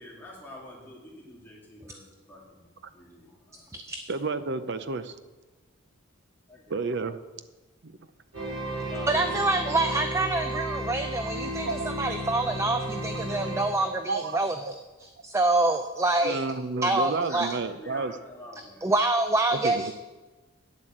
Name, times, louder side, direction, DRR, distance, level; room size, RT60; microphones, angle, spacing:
voice 1, 0.0-3.8 6.5-6.9 8.8-10.5 17.3-18.9, left 1 dB, 10° left, -5 dB, 2.8 m, -46 dB
voice 2, 4.1-5.1 6.7-7.2 7.8-7.9 11.7-11.9 13.8-14.4 14.7-14.8 16.2-18.1 19.6-19.9, right 3 dB, 55° right, 11 dB, 0.7 m, -31 dB
sound 1, 8.3-14.7, right 1 dB, 75° right, 3.4 m, -34 dB
voice 3, 9.1-15.1 15.3-16.4 16.8-17.5 18.8-19.9, right 2 dB, 15° right, 7 dB, 0.4 m, -26 dB
9.5 x 7.9 x 7.5 m, 1.2 s
head